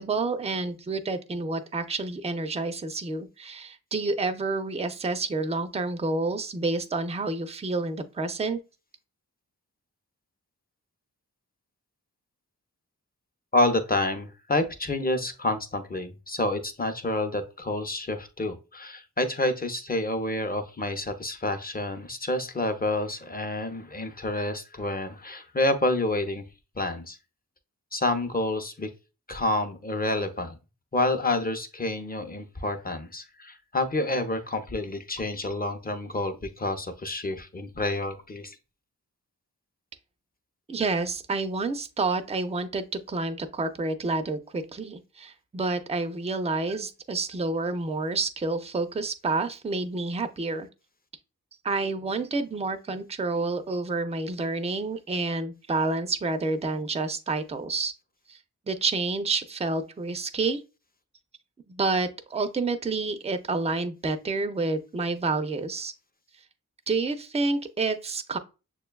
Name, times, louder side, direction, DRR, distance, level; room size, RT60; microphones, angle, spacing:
voice 1, 0.0-8.6 40.7-50.7 51.6-57.9 58.3-58.4 58.7-60.6 61.7-65.9 66.9-68.4, right 3 dB, 20° right, 0.4 m, -29 dB
voice 2, 13.5-26.4 26.8-27.2 27.9-28.9 29.3-30.5 30.9-38.6, left 2 dB, 25° left, 0.6 m, -28 dB
6.5 x 2.2 x 2.2 m
cardioid pair, 45°, 35 cm